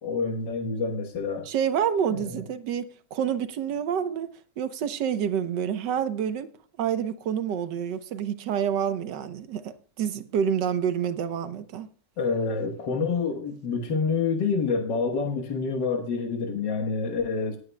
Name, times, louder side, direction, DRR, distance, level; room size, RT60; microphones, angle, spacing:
voice 1, 0.0-1.5 2.1-2.4 12.2-17.6, left 4 dB, 85° left, 1.9 m, -27 dB
voice 2, 1.5-4.3 4.6-6.5 6.8-11.9, right 8 dB, 85° right, 1.5 m, -28 dB
18.5 x 9.3 x 2.2 m
omnidirectional pair, 1.8 m